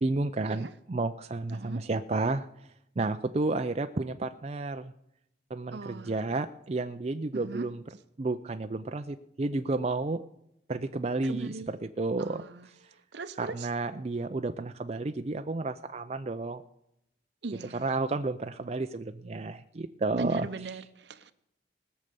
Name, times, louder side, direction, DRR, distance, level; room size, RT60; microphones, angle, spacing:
voice 1, 0.0-2.5 3.0-4.9 5.5-7.8 8.2-10.3 10.7-12.4 13.4-16.6 17.7-20.5, right 3 dB, 35° right, 0.5 m, -31 dB
voice 2, 1.5-1.9 5.7-6.2 7.3-7.7 11.2-11.7 12.2-12.7 13.1-13.7 17.4-17.9 20.1-21.3, right 3 dB, 70° right, 0.8 m, -39 dB
19.5 x 6.6 x 6.8 m
head